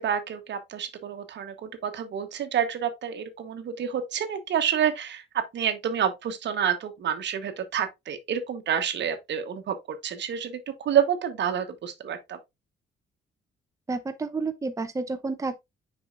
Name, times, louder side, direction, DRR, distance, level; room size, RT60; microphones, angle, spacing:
voice 1, 0.0-12.4, right 8 dB, 65° right, 1.1 m, -28 dB
voice 2, 13.9-15.6, right 3 dB, 15° right, 0.7 m, -30 dB
7.0 x 5.5 x 2.5 m
cardioid pair, 90°, 20 cm